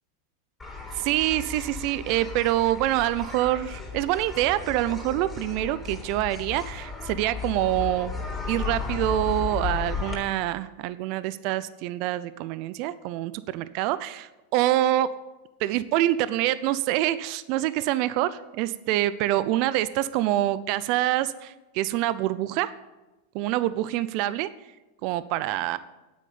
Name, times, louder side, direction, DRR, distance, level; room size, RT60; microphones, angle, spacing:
sound 1, 0.6-10.1, left 5 dB, 15° left, 3.5 m, -35 dB
voice 1, 0.9-8.2 8.5-15.1 15.6-22.7 23.3-24.5 25.0-25.8, right 14 dB, 55° right, 16 dB, 0.5 m, -26 dB
9.2 x 8.6 x 8.5 m, 1.1 s
hypercardioid pair, 105°, 0 cm